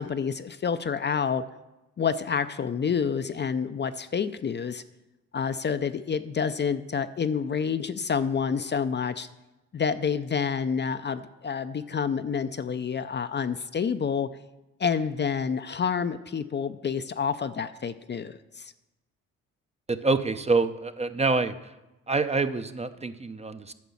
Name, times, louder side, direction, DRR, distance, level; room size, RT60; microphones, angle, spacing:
voice 1, 0.0-1.4 2.0-4.8 5.3-9.3 9.7-14.3 14.8-18.7, left 6 dB, 35° left, 11 dB, 0.5 m, -28 dB
voice 2, 19.9-21.7 22.1-23.7, right 3 dB, 20° right, 10 dB, 0.6 m, -26 dB
9.3 x 6.0 x 7.1 m, 1.0 s
supercardioid pair, 65°, 32 cm